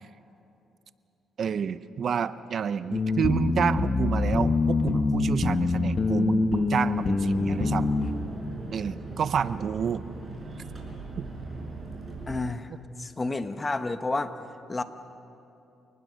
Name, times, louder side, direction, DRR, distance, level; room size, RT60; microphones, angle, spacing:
voice 1, 1.4-7.9 8.7-10.0 11.2-11.3, right 7 dB, 55° right, 14 dB, 0.7 m, -29 dB
sound 1, 2.9-8.1, left 3 dB, 40° left, 1.5 m, -25 dB
sound 2, 6.9-12.4, right 3 dB, 35° right, 5.9 m, -39 dB
voice 2, 12.3-12.7 13.0-14.3 14.7-14.8, left 3 dB, 25° left, 10 dB, 1.2 m, -30 dB
28.0 x 19.5 x 6.5 m, 2.9 s
cardioid pair, 90°, 0 cm